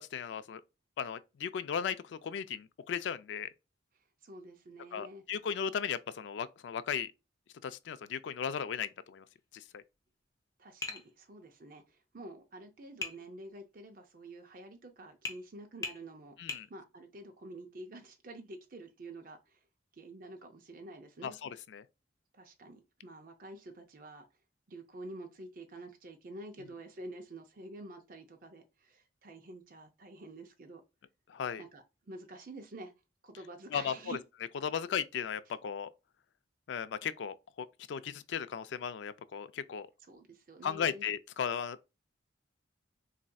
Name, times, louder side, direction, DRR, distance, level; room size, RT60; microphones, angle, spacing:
voice 1, 0.1-0.6 1.0-3.5 4.9-7.1 7.6-9.2 9.5-9.8 16.4-16.7 21.2-21.8 31.3-31.6 33.7-34.2 34.6-35.9 36.7-39.9 40.6-41.8, left 7 dB, 75° left, 0.3 m, -36 dB
voice 2, 4.2-5.2 10.6-19.6 19.9-21.3 22.3-24.2 24.7-30.8 31.6-32.9 33.2-34.2 40.1-41.0, right 2 dB, 45° right, 0.5 m, -48 dB
Tap, 10.8-11.1 13.0-13.2 15.2-15.4 15.8-16.0 16.5-16.7, left 4 dB, 20° left, 0.6 m, -38 dB
4.1 x 2.6 x 2.2 m
head